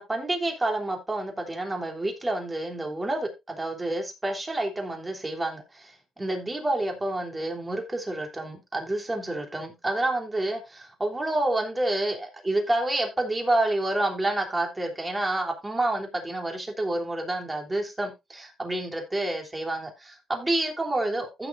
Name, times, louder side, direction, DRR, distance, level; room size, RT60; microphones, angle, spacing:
voice 1, 0.0-21.5, right 1 dB, 20° right, 2 dB, 3.3 m, -29 dB
15.0 x 6.9 x 2.6 m, 0.23 s
cardioid pair, 90°, 0 cm